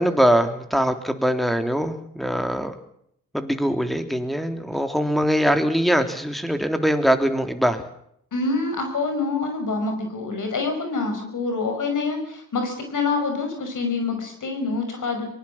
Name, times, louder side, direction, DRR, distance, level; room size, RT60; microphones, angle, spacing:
voice 1, 0.0-2.7 3.3-7.8, equal, ahead, 7 dB, 3.3 m, -22 dB
voice 2, 8.3-15.3, left 3 dB, 55° left, 5 dB, 5.8 m, -26 dB
23.5 x 19.5 x 7.4 m, 0.71 s
hypercardioid pair, 45°, 36 cm